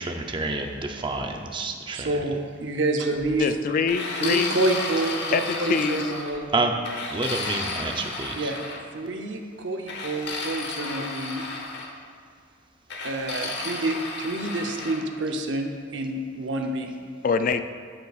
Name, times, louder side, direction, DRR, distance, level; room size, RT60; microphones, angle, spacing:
voice 1, 0.0-2.1 6.5-6.8 7.1-8.5, right 3 dB, 25° right, 3 dB, 0.6 m, -28 dB
voice 2, 1.9-3.5 4.2-6.5 8.4-8.6 8.9-11.4 13.0-16.9, right 2 dB, 70° right, 3 dB, 0.8 m, -28 dB
voice 3, 3.4-4.5 5.3-6.0 17.2-17.6, left 5 dB, 45° left, 10 dB, 0.3 m, -24 dB
sound 1, 3.9-6.4 6.8-8.8 9.9-11.9 12.9-15.0, left 3 dB, 60° left, 1.1 m, -33 dB
13.0 x 6.6 x 2.4 m, 2.1 s
head